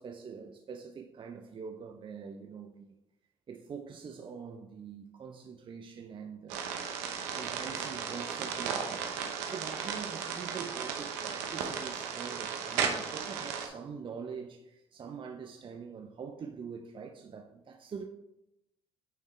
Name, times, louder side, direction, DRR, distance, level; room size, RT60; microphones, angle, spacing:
voice 1, 0.0-2.9 3.5-6.7 7.3-18.0, right 6 dB, 40° right, 0.6 m, -44 dB
sound 1, 6.5-13.7, right 7 dB, 85° right, 0.7 m, -35 dB
9.0 x 3.6 x 3.1 m
supercardioid pair, 65°, 13 cm